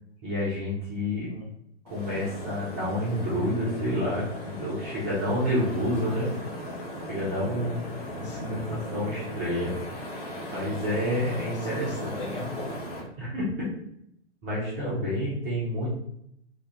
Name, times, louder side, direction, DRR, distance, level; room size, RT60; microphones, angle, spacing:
voice 1, 0.2-1.3 1.8-6.3 7.1-7.9 8.7-9.8 10.5-12.1 13.2-13.7 14.4-15.9, equal, 15° right, -9 dB, 0.4 m, -29 dB
sound 1, 1.9-13.0, equal, 35° left, 0.6 m, -37 dB
voice 2, 8.1-8.8 11.3-13.0, left 2 dB, 50° left, -4 dB, 1.2 m, -38 dB
2.2 x 2.1 x 2.7 m, 0.73 s
figure-of-eight pair, 110°, 35 cm